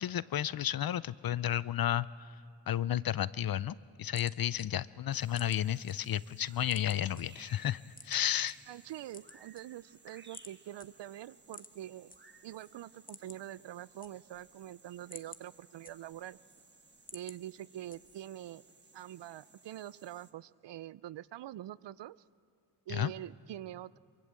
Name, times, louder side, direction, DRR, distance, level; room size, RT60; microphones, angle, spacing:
voice 1, 0.0-8.6 22.9-23.1, left 11 dB, 55° left, 19 dB, 0.5 m, -32 dB
sound 1, 4.0-5.9 6.3-7.2 7.9-8.5 9.0-10.0 10.3-10.5 10.8-10.9 11.4-12.2 12.5-12.6 12.9-13.5 13.8-14.5 14.9-16.3 16.7-17.4 17.9-18.3, left 3 dB, 20° left, 1.0 m, -51 dB
sound 2, 5.1-20.3, right 3 dB, 25° right, 1.4 m, -61 dB
voice 2, 8.7-12.1 12.4-16.4 17.1-18.6 18.9-22.2 22.9-24.0, right 13 dB, 80° right, 20 dB, 0.5 m, -45 dB
24.0 x 22.5 x 7.6 m, 2.4 s
cardioid pair, 70°, 42 cm